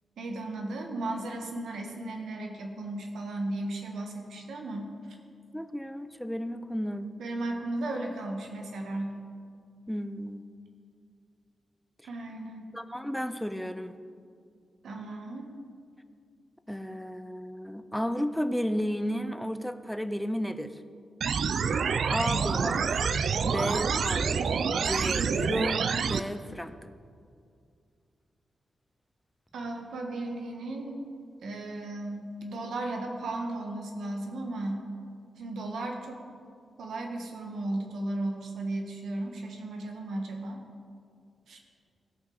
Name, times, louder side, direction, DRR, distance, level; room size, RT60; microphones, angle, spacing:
voice 1, 0.2-4.9 7.2-9.2 12.0-12.7 14.8-15.5 29.5-31.0 31.4-34.9 35.4-36.2 36.8-40.6 41.5-41.6, right 2 dB, 80° right, 2 dB, 1.3 m, -35 dB
voice 2, 5.5-7.1 9.9-10.4 12.7-14.0 16.7-20.8 22.1-23.1 23.4-24.4 24.7-26.8, equal, ahead, 10 dB, 0.4 m, -33 dB
sound 1, 21.2-26.2, right 6 dB, 60° right, 0.3 m, -27 dB
16.5 x 5.7 x 4.0 m, 2.3 s
wide cardioid pair, 155°, 0 cm